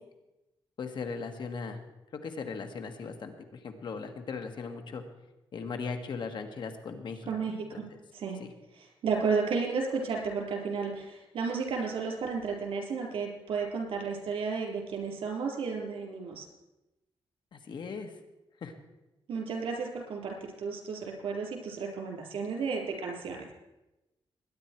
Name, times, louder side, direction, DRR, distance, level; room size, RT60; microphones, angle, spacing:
voice 1, 0.8-1.8 2.1-5.0 5.5-8.0 8.4-8.5 17.5-18.1 18.6-18.7, left 5 dB, 60° left, 6 dB, 1.6 m, -38 dB
voice 2, 7.3-7.9 8.1-8.4 9.0-16.5 19.3-23.5, right 5 dB, 90° right, 0 dB, 4.1 m, -33 dB
20.5 x 10.0 x 4.6 m, 0.99 s
wide cardioid pair, 140°, 9 cm